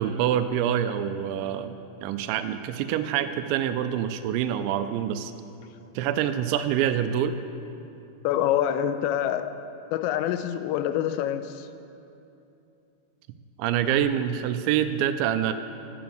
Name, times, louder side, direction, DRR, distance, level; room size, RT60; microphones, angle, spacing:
voice 1, 0.0-5.3 6.0-7.4 13.6-15.5, right 10 dB, 85° right, 10 dB, 2.7 m, -26 dB
voice 2, 8.2-9.5 9.9-11.7, left 11 dB, 85° left, 10 dB, 3.2 m, -26 dB
14.0 x 10.5 x 7.7 m, 2.7 s
omnidirectional pair, 5.8 m